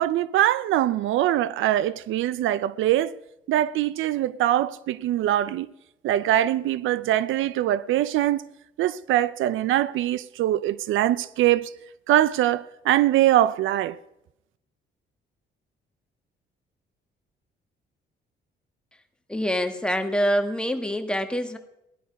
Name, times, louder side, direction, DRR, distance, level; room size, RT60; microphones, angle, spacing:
voice 1, 0.0-3.1 3.5-5.7 6.0-8.4 8.8-11.7 12.1-14.0, right 13 dB, 85° right, 0.6 m, -23 dB
voice 2, 19.3-21.6, equal, 5° left, 1.6 m, -25 dB
17.5 x 12.0 x 5.2 m
cardioid pair, 90°, 20 cm